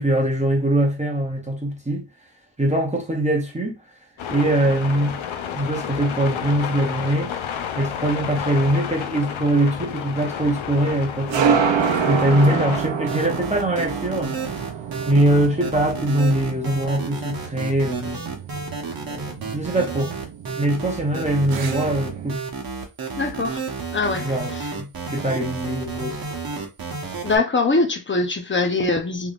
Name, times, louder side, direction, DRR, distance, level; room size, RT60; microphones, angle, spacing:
voice 1, 0.0-2.1 2.6-3.8 4.3-5.2 5.5-7.3 7.8-11.7 12.1-14.4 15.1-18.2 19.1-20.1 20.6-22.4 24.2-24.5 24.8-26.2, right 1 dB, 15° right, 0.8 m, -22 dB
sound 1, 4.2-12.8, left 8 dB, 75° left, 0.7 m, -31 dB
sound 2, 8.6-22.4, right 7 dB, 70° right, 0.7 m, -28 dB
sound 3, 12.7-27.4, right 4 dB, 45° right, 1.1 m, -31 dB
voice 2, 23.2-23.6 23.9-24.3 24.6-24.7 27.2-29.3, left 3 dB, 25° left, 0.7 m, -22 dB
3.5 x 3.4 x 2.4 m
wide cardioid pair, 130°, 48 cm